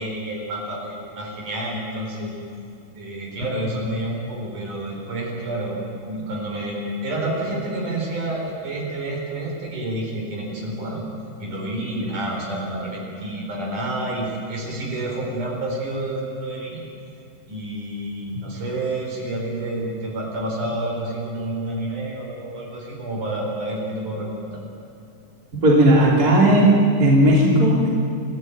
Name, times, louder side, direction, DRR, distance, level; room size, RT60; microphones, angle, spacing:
voice 1, 0.0-2.4 3.0-11.1 11.4-16.8 17.5-24.6, right 1 dB, 55° right, -1 dB, 5.6 m, -29 dB
voice 2, 25.6-27.9, right 1 dB, 25° right, -3 dB, 3.9 m, -15 dB
28.0 x 15.0 x 9.2 m, 2.6 s
omnidirectional pair, 4.5 m